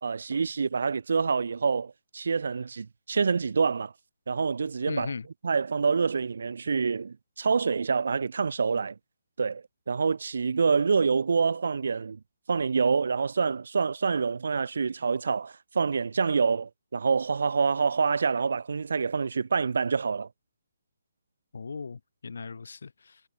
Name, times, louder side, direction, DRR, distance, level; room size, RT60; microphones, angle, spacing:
voice 1, 0.0-3.9 4.3-5.1 5.4-9.0 9.4-12.2 12.5-20.3, right 5 dB, 60° right, 0.7 m, -26 dB
voice 2, 4.9-5.3 21.5-23.2, left 5 dB, 65° left, 2.5 m, -37 dB
hypercardioid pair, 175°, 0 cm